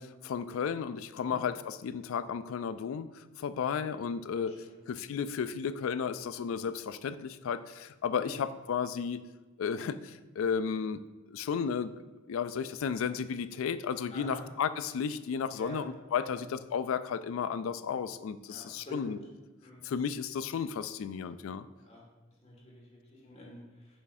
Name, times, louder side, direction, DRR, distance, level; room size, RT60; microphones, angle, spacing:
voice 1, 0.0-4.6 4.9-9.2 9.6-11.9 12.3-19.2 19.8-21.7, left 6 dB, 85° left, 13 dB, 0.3 m, -33 dB
voice 2, 14.1-14.4 15.6-15.8 18.5-19.2 19.6-19.8 21.9-22.0 22.4-23.6, left 1 dB, 30° left, -4 dB, 1.8 m, -47 dB
6.4 x 5.5 x 2.6 m, 1.2 s
head